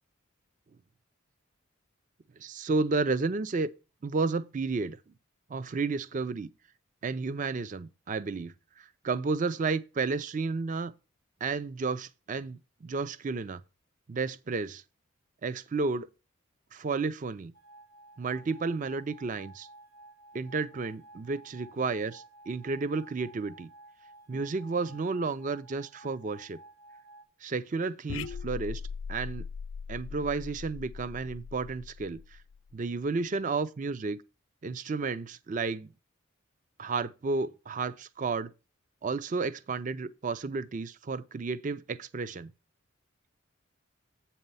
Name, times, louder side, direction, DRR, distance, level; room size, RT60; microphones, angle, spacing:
voice 1, 2.4-3.7 4.0-5.0 5.5-6.5 7.0-10.9 11.4-13.6 14.1-14.8 15.4-16.1 16.7-17.5 18.2-19.7 20.3-23.7 24.3-26.6 27.4-28.8 29.1-29.5 29.9-32.2 32.7-34.2 34.6-35.9 36.8-38.5 39.0-42.5, right 4 dB, 35° right, 0.4 m, -32 dB
sound 1, 17.5-27.2, right 2 dB, 85° right, 1.7 m, -54 dB
sound 2, 28.1-32.7, left 6 dB, 65° left, 0.3 m, -40 dB
8.0 x 4.2 x 5.4 m
head